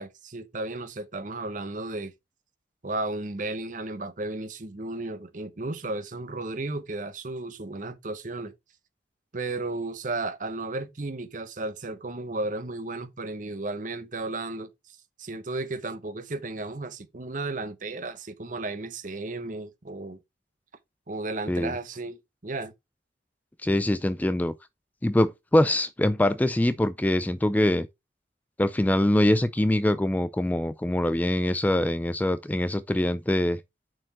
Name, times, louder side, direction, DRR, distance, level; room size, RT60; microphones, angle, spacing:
voice 1, 0.0-2.1 2.8-8.5 9.3-20.2 21.1-22.7, right 2 dB, 45° right, 1.0 m, -34 dB
voice 2, 23.6-24.5 25.0-27.9 28.6-33.6, left 1 dB, 10° left, 0.3 m, -24 dB
6.3 x 4.5 x 4.2 m
head